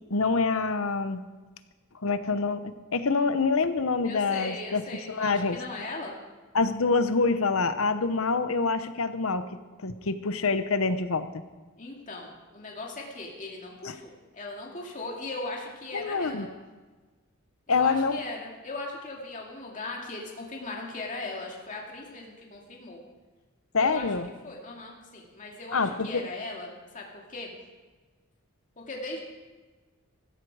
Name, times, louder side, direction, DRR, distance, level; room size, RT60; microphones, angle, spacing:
voice 1, 0.1-1.2 2.0-4.8 5.1-5.6 6.5-9.4 9.8-11.3 13.8-13.9 15.9-16.5 17.7-18.2 23.7-24.3 25.7-26.2, left 4 dB, 70° left, 11 dB, 0.9 m, -26 dB
voice 2, 4.0-6.2 11.8-16.5 17.7-23.0 23.8-24.1 24.4-27.5 28.8-29.2, left 2 dB, 35° left, -1 dB, 2.3 m, -38 dB
15.0 x 14.5 x 4.8 m, 1.3 s
head